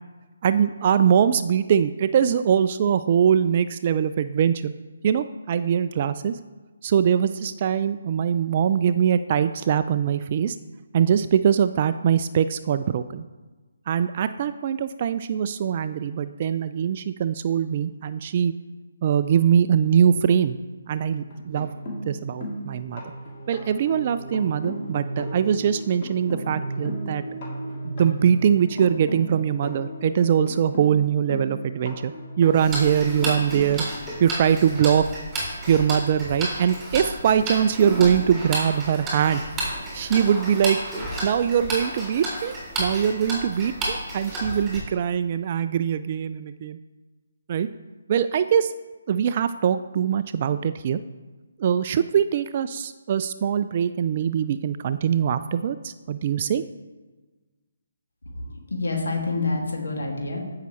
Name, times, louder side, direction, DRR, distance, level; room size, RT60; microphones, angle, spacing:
voice 1, 0.4-4.7 5.0-6.4 6.8-10.6 10.9-13.2 13.9-18.5 19.0-20.6 20.9-21.7 22.1-23.0 23.5-27.2 27.8-32.1 32.4-33.8 34.2-35.1 35.7-39.4 39.9-40.8 41.2-46.8 47.5-47.7 48.1-48.7 49.1-51.0 51.6-56.6, right 8 dB, 35° right, 12 dB, 0.3 m, -22 dB
sound 1, 21.2-35.2 36.4-36.5 36.8-37.0, right 1 dB, 35° left, 2.9 m, -35 dB
Tick-tock, 32.5-44.8, right 1 dB, 10° right, 3.1 m, -32 dB
voice 2, 58.7-60.4, left 3 dB, 65° left, -1 dB, 2.2 m, -27 dB
15.0 x 5.7 x 3.1 m, 1.3 s
figure-of-eight pair, 140°, 0 cm